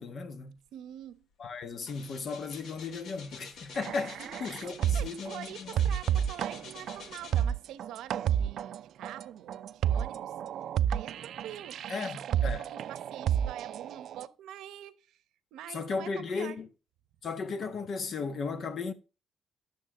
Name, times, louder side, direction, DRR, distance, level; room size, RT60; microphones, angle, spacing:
voice 1, 0.0-0.5 1.4-5.9 11.9-12.6 15.7-16.7 17.2-18.9, left 4 dB, 55° left, 1.3 m, -36 dB
voice 2, 0.7-1.3 4.2-4.3 4.6-10.3 10.9-15.2 15.5-16.6, right 11 dB, 90° right, 0.9 m, -45 dB
sound 1, 1.0-1.2 1.5-7.8 8.4-8.5, left 5 dB, 75° left, 1.4 m, -48 dB
sound 2, 3.8-5.3 5.7-14.3, right 9 dB, 70° right, 0.5 m, -30 dB
10.5 x 6.6 x 3.7 m
cardioid pair, 90°, 0 cm